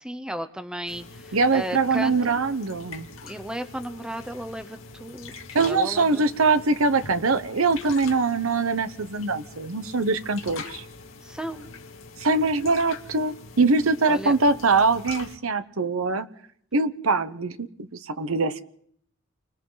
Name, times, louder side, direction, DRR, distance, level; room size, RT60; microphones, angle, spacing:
voice 1, 0.0-2.4 3.2-6.3 11.2-11.7 14.1-14.4, right 1 dB, 5° right, 9 dB, 0.8 m, -35 dB
sound 1, 0.9-15.4, left 4 dB, 70° left, 2.3 m, -43 dB
voice 2, 1.3-3.1 5.5-10.8 12.2-16.3 16.7-18.6, right 3 dB, 80° right, 10 dB, 1.0 m, -23 dB
29.5 x 25.0 x 4.0 m, 0.66 s
head